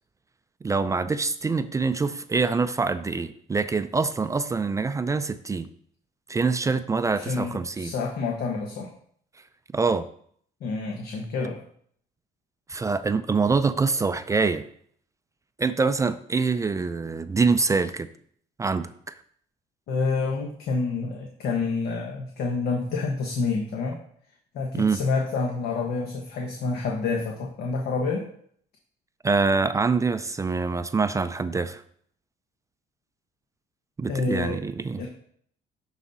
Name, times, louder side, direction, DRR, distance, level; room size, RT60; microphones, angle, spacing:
voice 1, 0.6-5.7 6.3-7.9 9.7-10.1 12.7-14.7 15.6-18.1 18.6-19.1 24.7-25.0 29.2-31.8 34.0-35.0, right 4 dB, 20° right, 11 dB, 0.4 m, -25 dB
voice 2, 7.2-8.9 10.6-11.6 19.9-24.0 24.5-28.3 34.1-34.7 35.0-35.1, left 4 dB, 70° left, 1 dB, 1.2 m, -28 dB
11.0 x 4.0 x 4.1 m, 0.62 s
cardioid pair, 110°, 17 cm